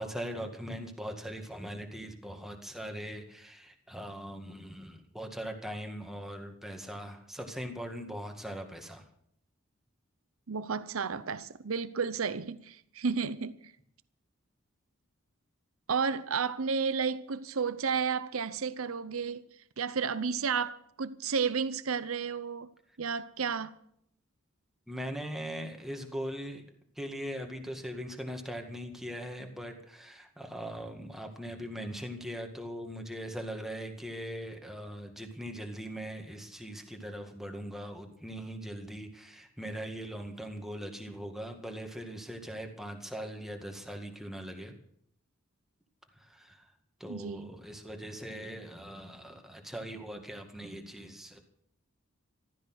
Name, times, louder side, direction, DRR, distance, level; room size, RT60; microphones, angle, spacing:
voice 1, 0.0-9.0 24.9-26.6 27.0-44.8 46.2-46.7 47.0-51.4, equal, ahead, 2.0 m, -40 dB
voice 2, 10.5-13.7 15.9-19.4 19.8-22.7 23.0-23.8 47.1-47.5, right 5 dB, 75° right, 0.7 m, -32 dB
15.0 x 13.0 x 6.3 m
head